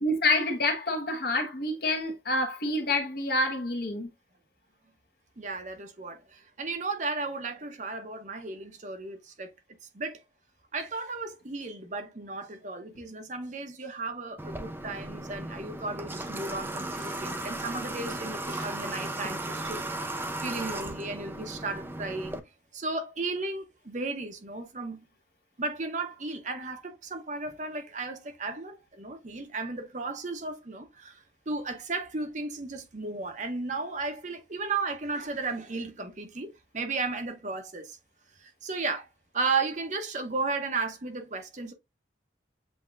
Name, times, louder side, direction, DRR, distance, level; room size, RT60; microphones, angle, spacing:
voice 1, 0.0-4.1, left 2 dB, 55° left, 1.1 m, -27 dB
voice 2, 5.4-9.5 9.9-10.2 10.7-20.1 20.4-22.4 22.7-25.0 25.6-38.0 38.4-39.1 39.3-41.7, right 3 dB, 40° right, 0.8 m, -34 dB
Water / Water tap faucet, 14.4-22.4, right 1 dB, 10° right, 0.5 m, -36 dB
7.8 x 2.8 x 2.4 m
head